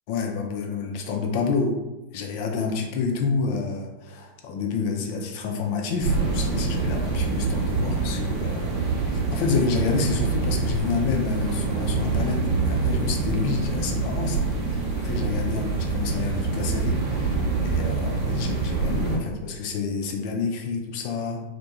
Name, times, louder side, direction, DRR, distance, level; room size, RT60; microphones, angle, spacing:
voice 1, 0.1-1.8 2.1-8.8 9.0-21.4, left 4 dB, 50° left, 2 dB, 0.5 m, -28 dB
sound 1, 6.0-19.2, right 4 dB, 45° right, 0.7 m, -26 dB
2.2 x 2.2 x 2.8 m, 1.0 s
figure-of-eight pair, 95°, 0 cm